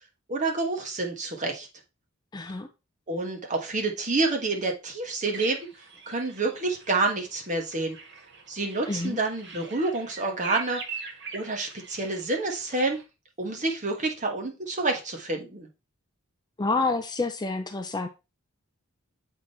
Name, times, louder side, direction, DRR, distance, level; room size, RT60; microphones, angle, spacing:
voice 1, 0.3-1.7 3.1-5.7 6.1-8.0 8.5-10.8 11.3-13.0 13.4-15.7, right 3 dB, 35° right, 1.4 m, -28 dB
voice 2, 2.3-2.7 8.9-9.2 16.6-18.1, left 3 dB, 20° left, 0.5 m, -28 dB
sound 1, 5.3-13.0, right 4 dB, 55° right, 1.5 m, -42 dB
7.4 x 3.7 x 4.2 m
head